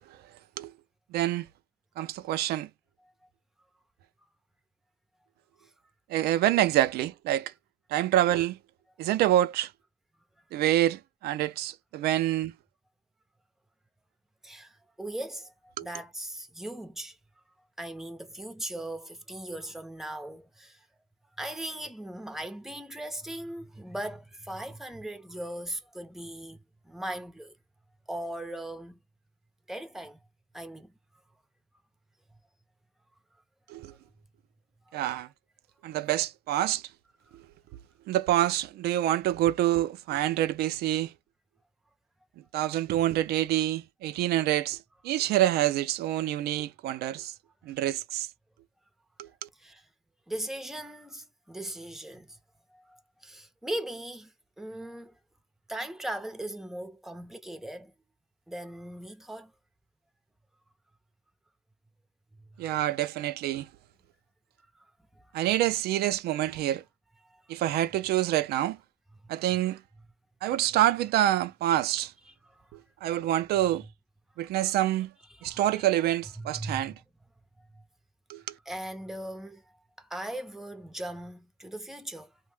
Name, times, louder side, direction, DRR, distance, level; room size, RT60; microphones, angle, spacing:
voice 1, 1.1-1.5 2.0-2.7 6.1-7.5 7.9-8.6 9.0-9.7 10.5-12.5 15.8-15.9 33.7-33.9 34.9-35.3 35.8-36.8 38.1-41.1 42.5-44.8 45.0-47.3 47.6-48.3 49.2-49.5 62.6-63.7 65.3-66.8 67.5-68.8 69.3-69.8 70.4-72.1 73.0-73.8 74.4-75.1 75.4-76.9 78.3-78.5, right 13 dB, 70° right, 0.4 m, -26 dB
voice 2, 14.4-17.2 17.8-20.8 21.4-26.6 26.8-27.5 28.1-29.0 29.7-30.2 30.5-30.9 34.9-35.0 49.6-49.9 50.3-52.4 52.7-55.1 55.7-57.9 58.5-59.5 64.7-64.9 65.4-65.5 67.3-67.4 71.9-72.7 75.3-75.9 76.4-76.9 78.7-79.6 80.0-82.4, right 1 dB, ahead, 0.6 m, -39 dB
2.6 x 2.1 x 3.2 m
cardioid pair, 110°, 17 cm